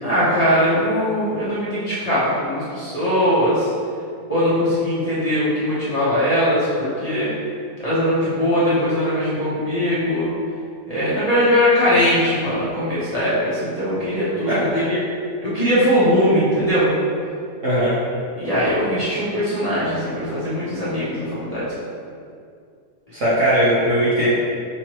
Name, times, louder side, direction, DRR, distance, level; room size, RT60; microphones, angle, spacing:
voice 1, 0.0-3.7 4.3-7.3 7.8-10.3 10.9-15.0 15.4-16.9 18.4-21.6, equal, 35° left, -11 dB, 0.7 m, -20 dB
voice 2, 14.5-14.8 17.6-18.0 23.1-24.3, equal, 55° right, -10 dB, 1.2 m, -19 dB
5.5 x 3.0 x 2.9 m, 2.3 s
omnidirectional pair, 1.8 m